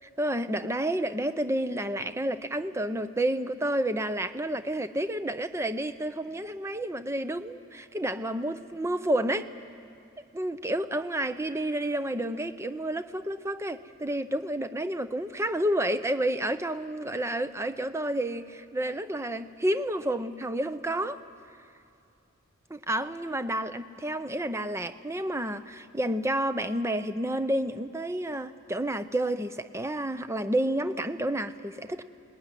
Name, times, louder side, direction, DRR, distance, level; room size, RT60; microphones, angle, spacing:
voice 1, 0.2-9.5 10.3-21.2 22.7-32.0, right 1 dB, 15° right, 11 dB, 0.6 m, -30 dB
23.5 x 20.0 x 9.9 m, 2.5 s
head